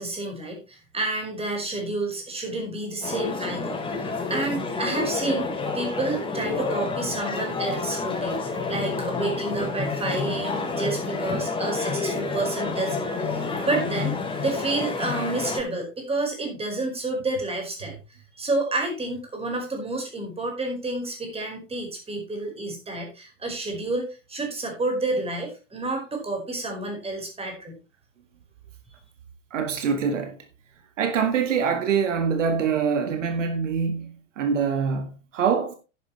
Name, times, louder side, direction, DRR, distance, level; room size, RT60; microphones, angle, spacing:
voice 1, 0.0-18.0 18.4-27.8, right 2 dB, 15° right, 5.0 m, -30 dB
sound 1, 3.0-15.6, left 4 dB, 15° left, 4.2 m, -29 dB
voice 2, 29.5-30.4 31.0-35.7, right 6 dB, 70° right, 1.8 m, -24 dB
10.5 x 10.5 x 3.2 m
figure-of-eight pair, 90°, 38 cm